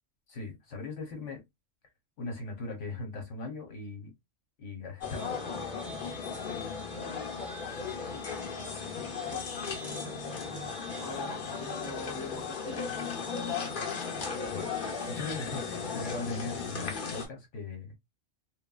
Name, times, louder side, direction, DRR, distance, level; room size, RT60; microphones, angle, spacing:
voice 1, 0.3-1.4 2.2-4.1 4.6-5.3 14.5-14.7 15.1-18.0, left 3 dB, 70° left, 1.2 m, -39 dB
sound 1, 5.0-17.3, left 5 dB, 50° left, 0.8 m, -36 dB
voice 2, 9.3-10.0 11.0-13.0, left 2 dB, 20° left, 0.8 m, -44 dB
3.2 x 2.2 x 2.3 m
omnidirectional pair, 1.4 m